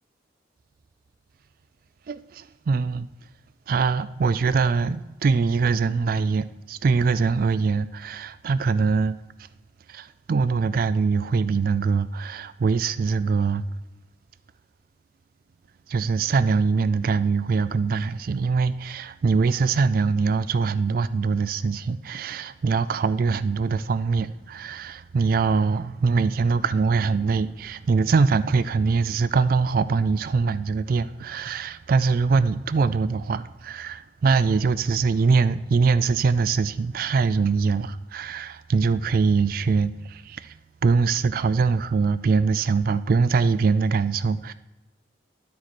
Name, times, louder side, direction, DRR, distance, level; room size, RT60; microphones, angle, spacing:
voice 1, 2.1-3.1 3.7-9.2 9.9-13.6 15.9-40.5 40.8-44.5, right 4 dB, 50° right, 0.3 m, -23 dB
12.0 x 4.7 x 4.3 m
head